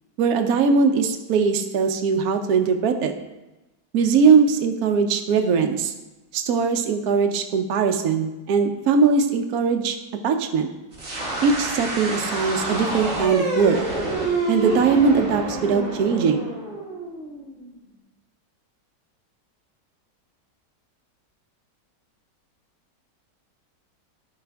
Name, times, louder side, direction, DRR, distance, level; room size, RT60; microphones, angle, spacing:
voice 1, 0.2-3.1 3.9-5.9 6.3-10.0 10.2-10.7 11.4-13.9 14.5-16.5, right 5 dB, 65° right, 5 dB, 1.1 m, -20 dB
sound 1, 10.9-17.7, right 2 dB, 40° right, 2.3 m, -28 dB
13.0 x 5.0 x 3.5 m, 1.0 s
omnidirectional pair, 1.9 m